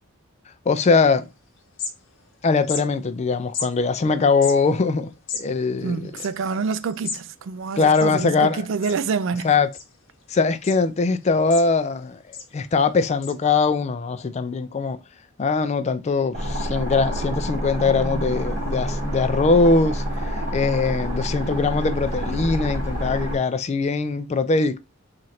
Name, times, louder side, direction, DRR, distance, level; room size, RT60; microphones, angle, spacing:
voice 1, 0.7-1.3 2.4-5.1 5.4-6.0 7.8-8.6 9.4-9.7 10.3-15.0 15.4-20.0 20.3-24.8, left 4 dB, 30° left, 0.3 m, -21 dB
sound 1, 1.2-1.3 1.6-2.4 2.6-2.8 3.5-3.7 4.3-7.3 7.6-7.7 7.8-8.5 8.8-9.2 9.7-10.2 10.6-10.8 11.2-12.0 12.3-12.5 13.2-13.3, left 6 dB, 60° left, 0.8 m, -34 dB
voice 2, 5.8-9.5 17.8-18.4, right 5 dB, 65° right, 0.4 m, -27 dB
sound 2, 16.3-23.4, equal, 40° right, 1.4 m, -27 dB
3.1 x 2.5 x 4.2 m
head